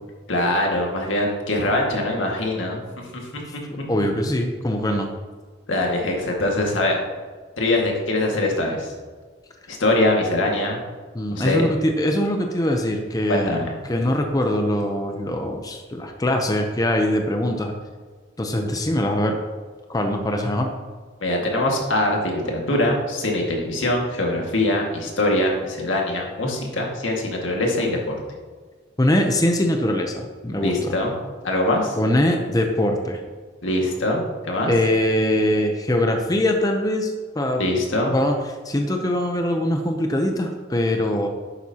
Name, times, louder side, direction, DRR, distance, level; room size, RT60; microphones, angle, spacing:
voice 1, 0.3-3.4 3.8-3.9 5.7-7.0 7.6-8.9 9.7-10.8 11.3-11.7 13.3-13.7 21.2-28.2 30.6-31.1 31.4-32.0 33.6-34.7 37.6-38.1, left 1 dB, 90° left, 0 dB, 1.9 m, -23 dB
voice 2, 3.9-5.1 11.1-13.6 13.9-17.7 18.4-19.4 19.9-20.7 29.0-30.9 32.0-33.2 34.7-37.6 38.1-38.3 38.6-41.3, left 1 dB, 20° left, 3 dB, 0.6 m, -22 dB
11.0 x 8.2 x 2.9 m, 1.5 s
head